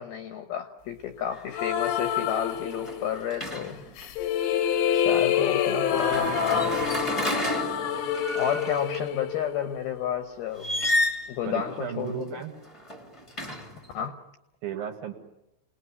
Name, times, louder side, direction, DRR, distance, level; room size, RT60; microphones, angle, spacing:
voice 1, 0.0-3.9 4.9-6.9 8.4-10.7 11.3-12.3 13.9-14.2, left 9 dB, 70° left, 7 dB, 2.5 m, -31 dB
sound 1, 1.3-1.6 2.0-4.1 5.9-9.0 10.5-11.4 12.6-13.9, left 1 dB, 15° left, 1.2 m, -31 dB
sound 2, 1.5-3.3 4.0-10.1, left 8 dB, 90° left, 4.3 m, -27 dB
voice 2, 11.4-12.5 14.6-15.1, right 9 dB, 60° right, 4 dB, 3.1 m, -34 dB
28.5 x 20.0 x 9.6 m, 0.88 s
omnidirectional pair, 5.6 m